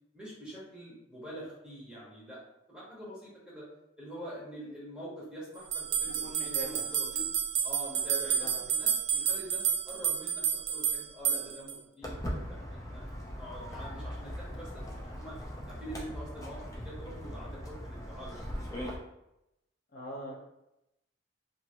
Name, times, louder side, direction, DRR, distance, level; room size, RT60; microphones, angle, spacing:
voice 1, 0.1-2.4 2.7-3.7 4.0-7.2 7.6-13.0 13.4-15.4 15.6-18.6, right 1 dB, 5° right, -8 dB, 0.9 m, -45 dB
sound 1, 5.7-11.8, right 7 dB, 75° right, 0.3 m, -30 dB
voice 2, 6.2-6.8 8.4-8.6 19.9-20.3, equal, 55° left, -4 dB, 0.8 m, -41 dB
Walk footsteps, 12.0-18.9, equal, 20° left, 0.5 m, -40 dB
2.6 x 2.5 x 2.8 m, 0.88 s
head